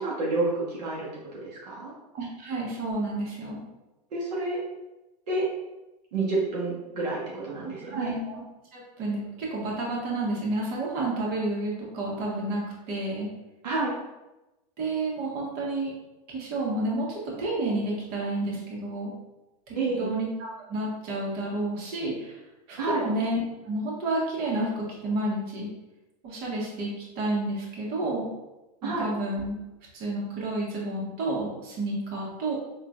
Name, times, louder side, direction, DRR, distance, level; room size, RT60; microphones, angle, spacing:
voice 1, 0.0-1.9 4.1-4.6 5.3-5.5 6.1-8.1 13.6-13.9 19.7-20.1 22.8-23.1 28.8-29.1, right 3 dB, 85° right, -5 dB, 0.9 m, -29 dB
voice 2, 2.1-3.6 7.6-8.4 8.7-12.6 12.9-13.3 14.8-15.9 16.3-19.1 19.7-20.3 20.7-22.3 22.7-25.7 26.2-28.3 28.8-29.5 29.9-32.6, right 2 dB, 50° right, -4 dB, 1.2 m, -30 dB
3.8 x 2.5 x 2.3 m, 1.0 s
hypercardioid pair, 110°, 20 cm